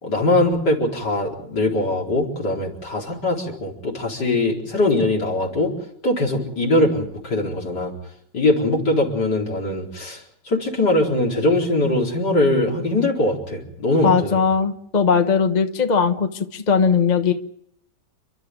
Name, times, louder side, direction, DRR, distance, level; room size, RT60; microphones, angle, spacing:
voice 1, 0.0-5.7 6.0-7.9 8.3-10.2 10.5-14.4, left 2 dB, 70° left, -1 dB, 4.9 m, -21 dB
voice 2, 14.0-17.3, left 6 dB, 30° left, 7 dB, 1.1 m, -19 dB
30.0 x 12.5 x 9.4 m, 0.72 s
omnidirectional pair, 1.9 m